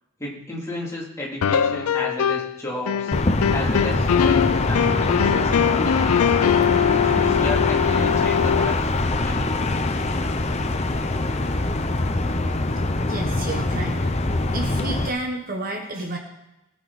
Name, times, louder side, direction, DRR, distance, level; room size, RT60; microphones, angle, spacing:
voice 1, 0.2-3.1 3.5-6.1 6.8-9.6, left 1 dB, 15° left, -5 dB, 3.1 m, -32 dB
sound 1, 1.4-2.6 2.9-8.7, left 8 dB, 80° left, 0.4 m, -22 dB
sound 2, 3.1-15.1, left 2 dB, 30° left, 0.7 m, -23 dB
voice 2, 13.1-14.0 14.5-16.2, right 2 dB, 40° right, 2 dB, 1.2 m, -30 dB
20.0 x 8.6 x 4.2 m, 0.95 s
head